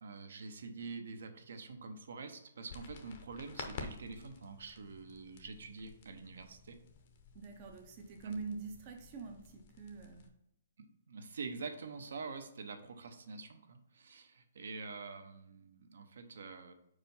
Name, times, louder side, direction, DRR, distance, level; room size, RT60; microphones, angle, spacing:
voice 1, 0.0-6.8 8.2-8.4 10.8-16.7, right 4 dB, 65° right, 8 dB, 0.8 m, -46 dB
sound 1, 2.7-10.3, left 5 dB, 30° left, 0.7 m, -51 dB
voice 2, 7.3-10.3, right 4 dB, 20° right, 2 dB, 0.5 m, -46 dB
5.0 x 4.6 x 5.4 m, 0.79 s
hypercardioid pair, 180°, 0 cm